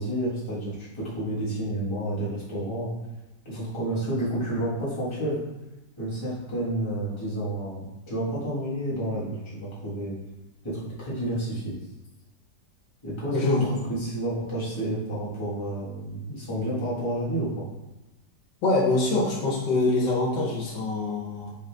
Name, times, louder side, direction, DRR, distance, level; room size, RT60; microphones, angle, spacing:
voice 1, 0.0-2.9 3.4-5.4 6.0-10.2 10.6-11.7 13.0-17.7, right 1 dB, 15° left, -8 dB, 1.3 m, -30 dB
voice 2, 13.3-13.7 18.6-21.5, left 2 dB, 85° left, -4 dB, 1.5 m, -24 dB
3.9 x 3.8 x 3.4 m, 0.99 s
omnidirectional pair, 1.8 m